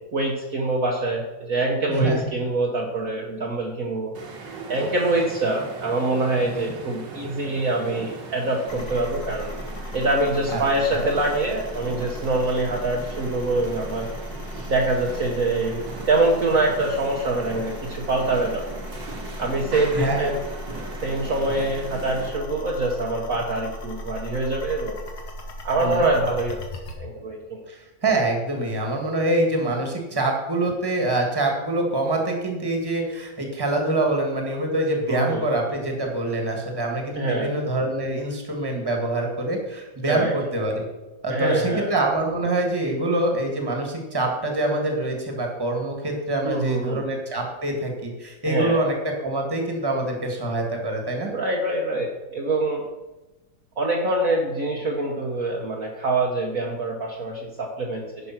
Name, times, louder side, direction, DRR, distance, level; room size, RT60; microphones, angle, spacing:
voice 1, 0.1-4.1 4.7-9.5 9.9-14.1 14.7-15.8 16.1-18.6 19.4-20.4 21.0-25.0 25.6-26.7 27.0-27.6 35.1-35.4 37.1-37.5 40.1-40.3 41.3-41.9 46.4-47.0 48.5-48.8 51.3-52.8 53.8-58.3, right 2 dB, 50° right, -1 dB, 1.3 m, -24 dB
voice 2, 1.9-2.4 6.5-6.7 10.5-10.6 10.9-11.1 19.9-20.3 25.8-26.1 27.7-40.8 41.2-51.3, right 2 dB, 15° right, 2 dB, 1.6 m, -25 dB
sound 1, 4.1-22.4, right 3 dB, 65° right, 2.1 m, -39 dB
sound 2, 8.7-27.0, left 1 dB, 55° left, 2.0 m, -37 dB
11.0 x 5.4 x 5.9 m, 1.1 s
omnidirectional pair, 2.1 m